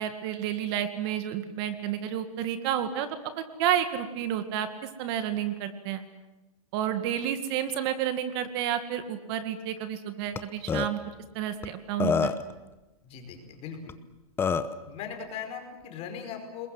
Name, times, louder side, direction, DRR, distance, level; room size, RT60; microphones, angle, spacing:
voice 1, 0.0-3.1 3.4-4.7 5.0-6.0 6.7-11.0 11.3-12.4, right 10 dB, 45° right, 10 dB, 2.0 m, -30 dB
Burping eructation, 10.4-10.5 10.7-10.9 11.6-11.7 12.0-12.5 13.9-14.0 14.4-14.8, left 6 dB, 10° left, 0.9 m, -26 dB
voice 2, 13.0-13.9 14.8-16.7, left 7 dB, 30° left, 5 dB, 5.0 m, -39 dB
28.5 x 21.5 x 7.8 m, 1.1 s
hypercardioid pair, 145°, 19 cm